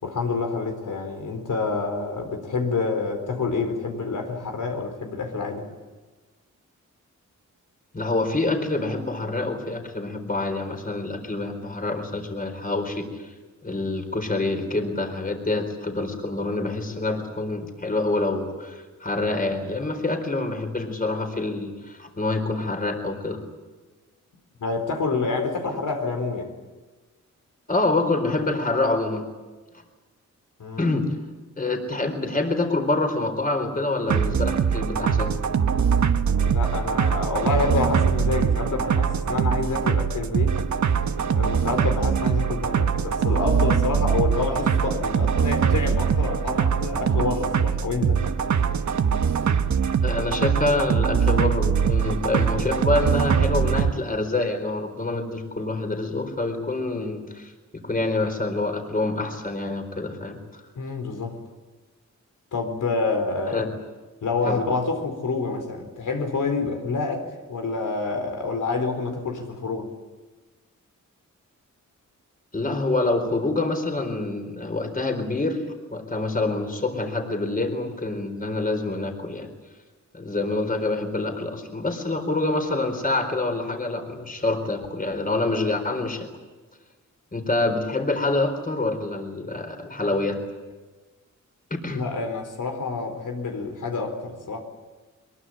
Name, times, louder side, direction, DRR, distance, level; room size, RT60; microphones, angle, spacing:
voice 1, 0.0-5.7 24.6-26.5 30.6-30.9 36.4-40.6 41.2-48.2 60.7-61.4 62.5-63.7 64.2-69.9 91.9-94.6, left 4 dB, 85° left, 4 dB, 4.4 m, -28 dB
voice 2, 7.9-13.3 13.6-23.4 25.6-25.8 27.7-29.3 30.8-31.1 31.6-35.3 50.0-57.5 57.8-60.4 63.5-63.7 64.5-64.6 72.5-75.6 75.9-79.5 80.1-86.3 87.3-90.4 91.7-92.0, left 2 dB, 30° left, 6 dB, 4.3 m, -26 dB
sound 1, 34.1-53.9, right 7 dB, 65° right, 1.2 m, -22 dB
23.0 x 22.5 x 8.9 m, 1.3 s
wide cardioid pair, 115°, 31 cm